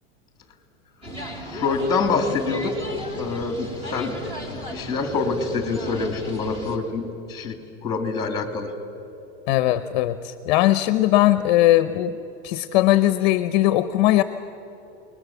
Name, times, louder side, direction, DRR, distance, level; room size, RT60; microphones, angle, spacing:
sound 1, 1.0-6.8, equal, 15° right, 2.7 m, -35 dB
voice 1, 1.5-2.7 3.2-4.1 4.5-7.0 7.3-7.5 7.8-8.7, left 4 dB, 10° left, 6 dB, 2.5 m, -25 dB
voice 2, 9.5-12.1 12.4-14.2, left 15 dB, 45° left, 11 dB, 0.8 m, -19 dB
28.5 x 20.5 x 7.2 m, 2.8 s
supercardioid pair, 170°, 32 cm